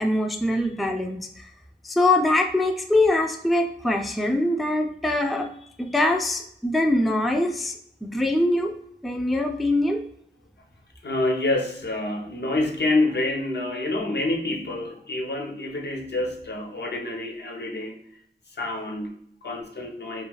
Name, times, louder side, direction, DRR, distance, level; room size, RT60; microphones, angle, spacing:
voice 1, 0.0-1.5 1.8-5.5 5.8-8.7 9.0-10.0, left 1 dB, ahead, 4 dB, 0.3 m, -23 dB
voice 2, 11.0-18.0 18.5-20.2, left 2 dB, 65° left, 2 dB, 0.7 m, -27 dB
2.3 x 2.2 x 3.1 m, 0.71 s
cardioid pair, 45°, 19 cm